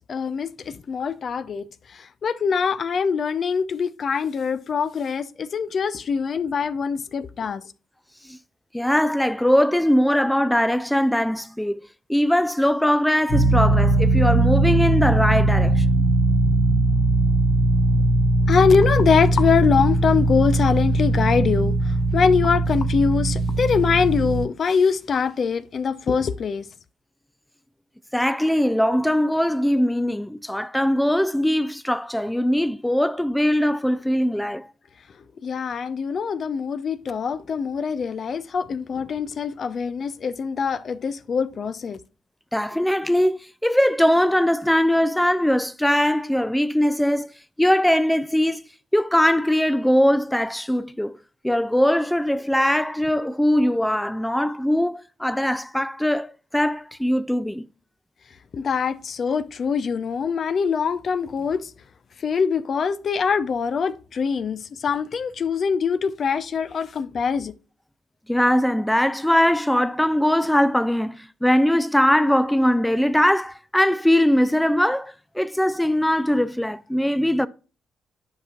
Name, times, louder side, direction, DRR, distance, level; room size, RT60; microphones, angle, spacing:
voice 1, 0.1-7.6 18.5-26.7 35.4-42.0 58.5-61.7 62.2-67.5, left 6 dB, 50° left, 0.6 m, -23 dB
voice 2, 8.7-11.8 12.1-15.9 28.1-34.7 42.5-47.3 47.6-48.6 48.9-51.2 51.4-57.6 68.3-77.5, equal, 5° left, 0.4 m, -21 dB
sound 1, 13.3-24.4, right 2 dB, 70° left, 3.0 m, -20 dB
10.5 x 6.0 x 2.4 m
hypercardioid pair, 45°, 0 cm